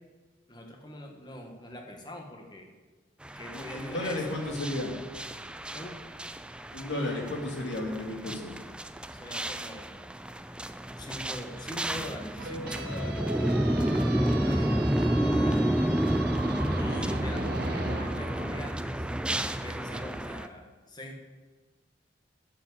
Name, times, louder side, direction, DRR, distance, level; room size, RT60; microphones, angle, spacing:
voice 1, 0.5-2.7 3.4-4.2 5.7-6.0 9.1-10.0 11.0-13.3 14.1-14.8 15.2-15.7 16.7-19.1 19.6-21.2, left 1 dB, 25° left, 2 dB, 1.7 m, -43 dB
sound 1, 3.2-20.5, right 1 dB, 5° right, 0.4 m, -31 dB
voice 2, 3.5-5.0 6.7-8.6, left 1 dB, 75° left, 0 dB, 2.7 m, -33 dB
sound 2, 12.4-18.6, right 2 dB, 55° right, 1.0 m, -38 dB
10.0 x 7.5 x 8.3 m, 1.3 s
head